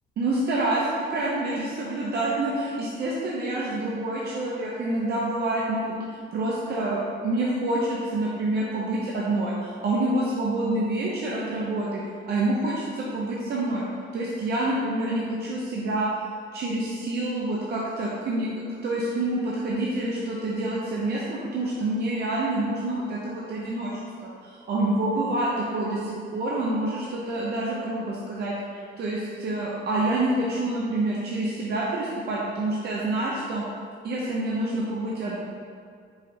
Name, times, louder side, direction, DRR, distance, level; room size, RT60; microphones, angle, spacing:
voice 1, 0.2-13.8 14.1-16.1 16.5-18.5 18.8-33.7 34.0-35.4, right 2 dB, 55° right, -5 dB, 0.6 m, -27 dB
4.7 x 2.6 x 3.2 m, 2.2 s
cardioid pair, 90°, 20 cm